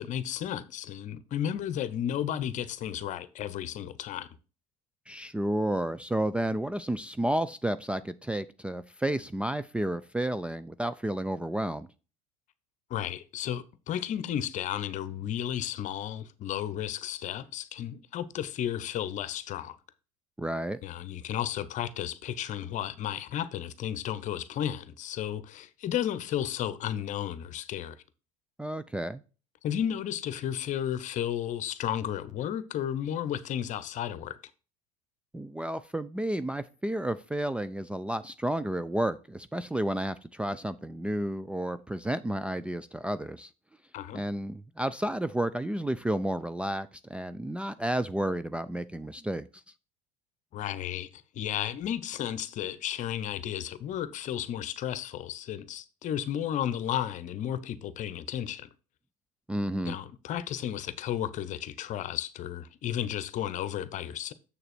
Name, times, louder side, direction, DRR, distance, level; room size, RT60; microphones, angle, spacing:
voice 1, 0.0-4.3 12.9-19.8 20.8-27.9 29.6-34.4 43.9-44.2 50.5-58.7 59.8-64.3, left 10 dB, 45° left, 0.9 m, -33 dB
voice 2, 5.1-11.9 20.4-20.8 28.6-29.2 35.3-43.5 44.1-49.4 59.5-60.0, right 1 dB, 5° right, 0.4 m, -31 dB
7.2 x 6.7 x 4.3 m
hypercardioid pair, 80°, 18 cm